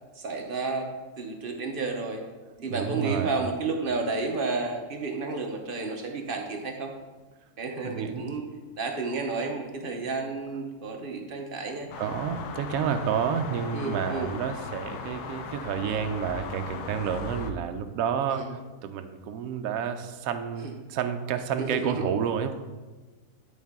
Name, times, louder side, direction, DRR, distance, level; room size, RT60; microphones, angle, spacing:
voice 1, 0.1-0.9 1.2-2.2 2.6-6.9 7.6-8.4 8.8-11.9 13.7-14.3 18.3-18.5 20.6-20.7 21.6-22.0, right 3 dB, 45° right, 2 dB, 0.8 m, -31 dB
voice 2, 2.6-3.3 7.8-8.3 12.0-18.5 18.8-22.5, right 7 dB, 70° right, 7 dB, 1.0 m, -30 dB
sound 1, 11.9-17.5, left 5 dB, 85° left, 1.2 m, -38 dB
10.0 x 4.3 x 3.6 m, 1.3 s
omnidirectional pair, 1.7 m